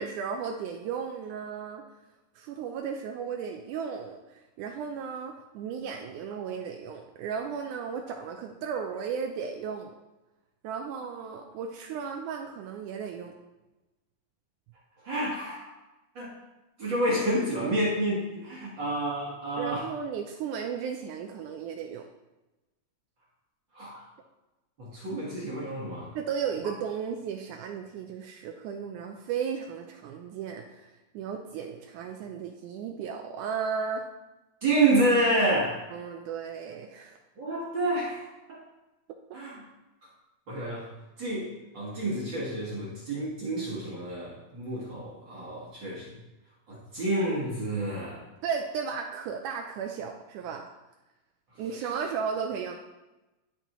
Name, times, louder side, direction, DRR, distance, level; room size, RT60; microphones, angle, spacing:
voice 1, 0.0-1.9 2.4-9.9 10.6-13.3 19.6-22.1 26.1-34.1 35.9-37.2 48.4-50.7 51.6-52.8, right 6 dB, 80° right, 3 dB, 2.0 m, -35 dB
voice 2, 15.0-15.7 16.1-16.3 16.8-19.8 23.7-24.0 24.8-26.1 34.6-35.8 37.4-38.6 39.3-39.6 40.5-40.8 41.2-41.5 41.7-46.1 46.7-48.2, right 1 dB, 50° right, -6 dB, 1.5 m, -29 dB
12.0 x 4.2 x 3.0 m, 1.0 s
omnidirectional pair, 3.7 m